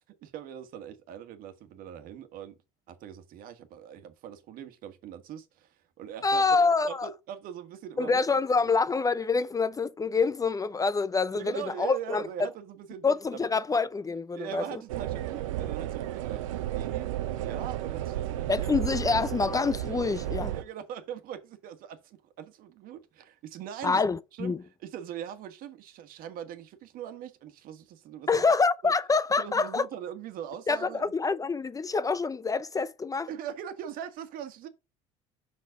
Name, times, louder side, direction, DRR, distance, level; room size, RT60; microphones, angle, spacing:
voice 1, 0.1-2.6 2.9-6.6 6.9-8.7 11.3-13.0 13.3-13.5 14.3-18.9 20.5-24.0 24.3-28.4 28.8-28.9 29.4-31.1 33.3-34.7, right 9 dB, 60° right, 1.4 m, -41 dB
voice 2, 6.2-7.1 8.0-12.5 13.0-14.8 18.5-20.5 23.8-24.6 28.3-29.8 30.7-33.3, left 4 dB, 20° left, 0.5 m, -26 dB
sound 1, 14.9-20.6, right 13 dB, 90° right, 0.7 m, -33 dB
5.8 x 4.5 x 4.7 m
supercardioid pair, 80°, 16 cm